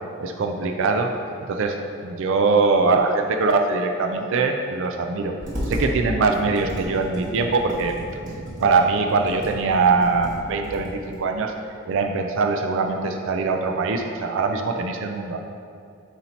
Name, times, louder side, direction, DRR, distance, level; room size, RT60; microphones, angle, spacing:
voice 1, 0.2-1.1 1.5-5.3 5.7-7.9 8.6-11.5 11.9-15.4, right 4 dB, 65° right, 4 dB, 0.4 m, -22 dB
Computer keyboard, 5.4-5.9 6.3-11.2, equal, 40° right, 1.4 m, -34 dB
7.9 x 2.8 x 4.3 m, 2.4 s
head